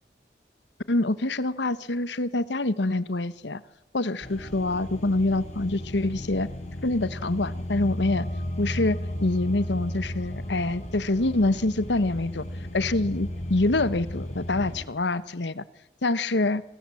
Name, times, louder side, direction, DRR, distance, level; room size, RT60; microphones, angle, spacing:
voice 1, 0.9-3.6 3.9-6.5 6.8-8.2 8.6-12.4 12.7-15.6 16.0-16.6, left 2 dB, 80° left, 16 dB, 1.1 m, -26 dB
sound 1, 4.2-14.9, left 1 dB, 40° left, 4.5 m, -35 dB
27.5 x 21.0 x 7.7 m, 0.96 s
head